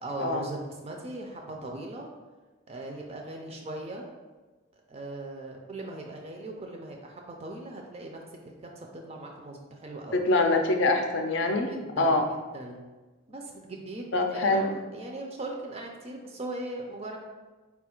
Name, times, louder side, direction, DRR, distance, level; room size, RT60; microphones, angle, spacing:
voice 1, 0.0-2.1 2.7-4.1 4.9-8.2 8.6-10.2 11.7-12.9 13.3-17.2, right 2 dB, 30° right, 1 dB, 0.4 m, -39 dB
voice 2, 10.1-12.2 14.1-14.6, left 2 dB, 60° left, 4 dB, 0.5 m, -24 dB
4.2 x 2.3 x 4.3 m, 1.2 s
head